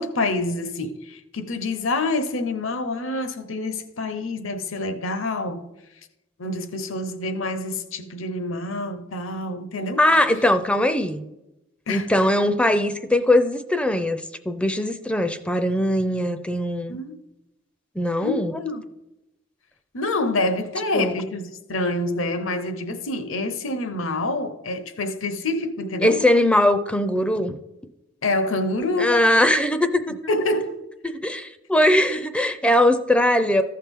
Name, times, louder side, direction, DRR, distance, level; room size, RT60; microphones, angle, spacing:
voice 1, 0.0-5.7 6.4-10.0 11.9-12.1 16.9-17.2 18.2-18.9 19.9-26.2 28.2-29.2 30.3-30.8, left 2 dB, 75° left, 0.9 m, -27 dB
voice 2, 10.0-11.2 11.9-17.0 18.0-18.5 20.9-21.1 26.0-27.6 29.0-30.1 31.2-33.6, left 1 dB, 5° left, 0.4 m, -20 dB
14.5 x 5.7 x 3.6 m
head